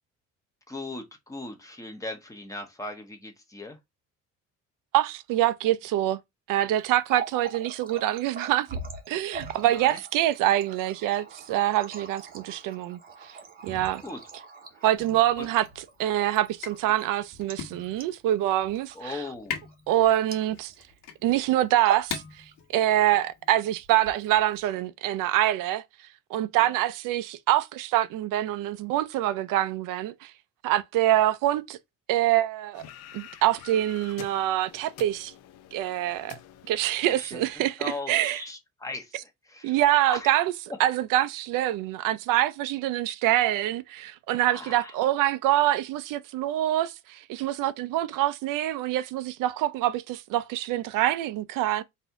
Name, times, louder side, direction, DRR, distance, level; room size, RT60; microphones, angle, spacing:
voice 1, 0.7-3.8 9.6-10.0 14.0-14.2 14.7-14.8 15.4-15.5 18.9-19.6 26.6-26.7 37.2-37.4 37.8-39.8 40.1-40.3 44.5-44.9, left 2 dB, 10° left, 0.8 m, -38 dB
voice 2, 4.9-6.2 6.5-8.7 9.1-13.0 13.6-14.0 14.8-15.7 16.0-19.2 19.9-20.7 21.2-22.4 22.7-25.8 26.3-30.3 30.6-31.8 32.1-32.8 33.1-35.3 35.7-36.4 36.7-38.4 39.6-40.5 40.8-51.8, right 14 dB, 85° right, 0.5 m, -25 dB
Water tap faucet, 6.9-20.9 21.2-21.4 21.7-22.2 22.5-23.2 23.8-24.6, right 5 dB, 30° right, 0.8 m, -41 dB
sound 1, 15.0-23.8, left 8 dB, 75° left, 1.5 m, -42 dB
sound 2, 32.7-37.7, left 10 dB, 55° left, 0.6 m, -48 dB
4.1 x 2.7 x 4.5 m
cardioid pair, 170°, 32 cm